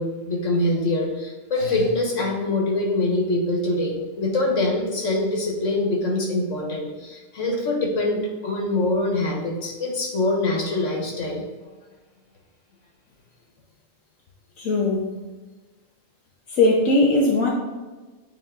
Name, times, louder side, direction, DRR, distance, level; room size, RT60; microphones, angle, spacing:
voice 1, 0.0-11.5, left 2 dB, 70° left, -1 dB, 1.7 m, -24 dB
voice 2, 14.6-15.0 16.5-17.5, left 2 dB, 90° left, -3 dB, 1.3 m, -19 dB
9.5 x 3.2 x 3.8 m, 1.2 s
omnidirectional pair, 1.4 m